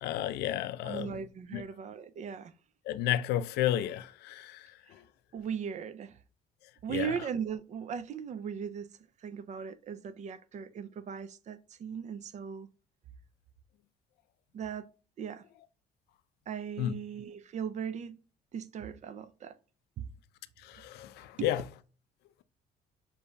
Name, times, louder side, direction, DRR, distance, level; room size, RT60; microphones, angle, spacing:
voice 1, 0.0-1.2 1.5-1.6 2.9-4.7 6.9-7.1 16.8-16.9 20.6-21.6, left 12 dB, 75° left, 0.4 m, -32 dB
voice 2, 0.8-2.5 5.3-6.2 6.8-12.7 14.5-14.9 15.2-15.4 16.5-18.2 18.5-19.6 20.0-20.1 21.4-21.5, right 7 dB, 45° right, 0.4 m, -38 dB
6.7 x 2.7 x 2.2 m
cardioid pair, 110°, 17 cm